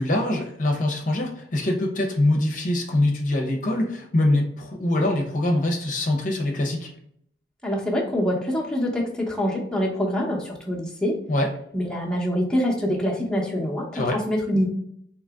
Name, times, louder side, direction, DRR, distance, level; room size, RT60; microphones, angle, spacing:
voice 1, 0.0-6.9 11.3-11.5 13.9-14.2, left 1 dB, 50° left, 1 dB, 0.8 m, -23 dB
voice 2, 7.6-11.2 11.7-14.7, equal, 5° left, -3 dB, 0.9 m, -25 dB
3.9 x 2.9 x 3.6 m, 0.68 s
head